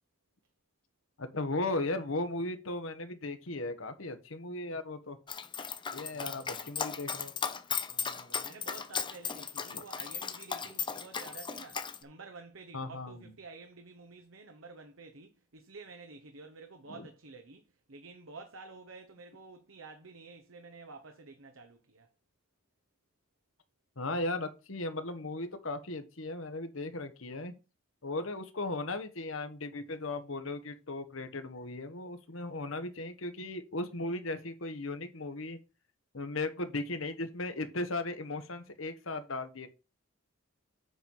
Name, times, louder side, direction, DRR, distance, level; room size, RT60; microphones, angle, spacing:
voice 1, 1.2-5.2 5.9-7.3 9.7-9.8 12.7-13.3 16.9-17.1 24.0-27.6 28.0-35.6 36.1-39.7, left 2 dB, 75° left, 1.3 m, -37 dB
Dog, 5.3-12.0, left 6 dB, 25° left, 0.7 m, -36 dB
voice 2, 6.1-6.7 7.9-22.1, right 3 dB, 75° right, 1.0 m, -50 dB
8.1 x 5.5 x 4.7 m
head